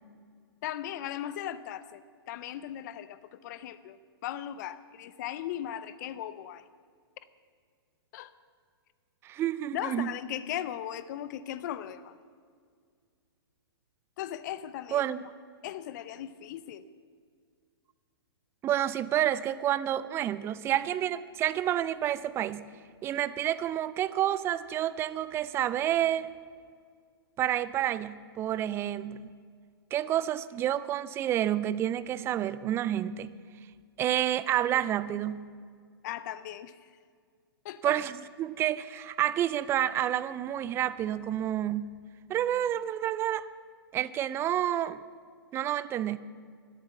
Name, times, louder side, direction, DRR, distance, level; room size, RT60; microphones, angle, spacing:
voice 1, 0.6-6.7 8.1-8.3 9.7-12.2 14.2-15.2 15.6-16.9 36.0-36.9 37.6-38.0, left 11 dB, 45° left, 15 dB, 0.7 m, -38 dB
voice 2, 9.2-10.1 14.9-15.2 18.6-22.6 23.0-26.3 27.4-29.2 29.9-33.3 34.0-35.5 37.8-38.1 38.4-41.9 42.3-43.5 43.9-45.0 45.5-46.2, right 11 dB, 20° right, 17 dB, 0.4 m, -29 dB
12.5 x 12.5 x 7.2 m, 2.1 s
hypercardioid pair, 130°, 13 cm